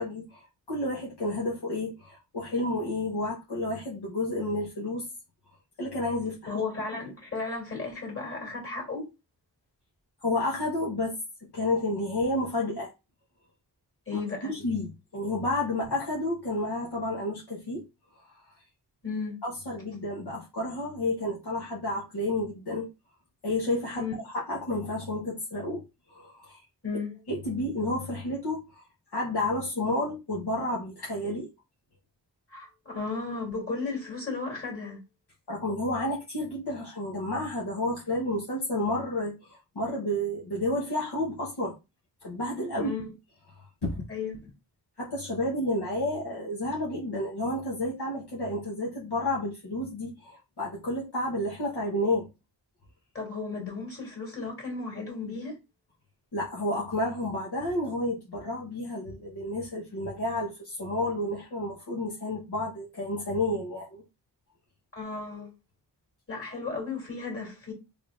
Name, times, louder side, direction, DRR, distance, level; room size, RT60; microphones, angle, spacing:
voice 1, 0.0-5.1 5.8-6.5 10.2-11.1 11.4-12.9 14.1-17.8 19.4-22.9 23.4-24.1 24.3-25.8 26.1-26.6 27.3-28.8 29.1-31.5 35.5-41.7 42.2-42.9 43.6-44.0 45.0-52.3 56.3-64.0, left 1 dB, 65° left, 1.1 m, -31 dB
voice 2, 6.5-9.0 14.1-14.5 19.0-19.4 24.0-24.1 26.8-27.1 32.5-35.0 42.7-43.1 44.1-44.3 53.1-55.6 64.9-65.5 66.3-67.7, left 4 dB, 30° left, 2.3 m, -34 dB
3.6 x 3.4 x 2.5 m
wide cardioid pair, 70°, 42 cm